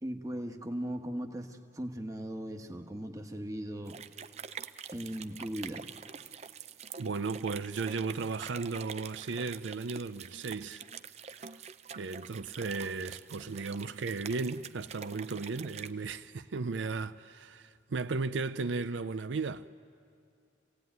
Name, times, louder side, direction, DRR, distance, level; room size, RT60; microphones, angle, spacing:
voice 1, 0.0-4.0 4.9-5.8, equal, 20° right, 1.3 m, -38 dB
sound 1, 3.9-15.9, right 7 dB, 35° right, 0.5 m, -46 dB
voice 2, 7.0-10.8 11.9-19.6, right 4 dB, 80° right, 0.5 m, -35 dB
27.0 x 17.0 x 9.4 m
head